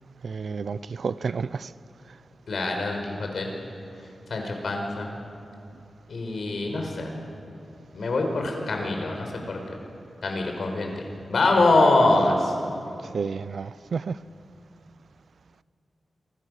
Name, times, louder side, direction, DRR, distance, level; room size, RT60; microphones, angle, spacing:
voice 1, 0.2-1.7 13.0-14.2, right 5 dB, 70° right, 0.6 m, -31 dB
voice 2, 2.5-3.5 4.3-5.1 6.1-7.1 7.9-9.6 10.2-10.9 11.3-12.5, left 2 dB, 70° left, 5.0 m, -24 dB
27.5 x 25.5 x 6.7 m
wide cardioid pair, 105°, 0 cm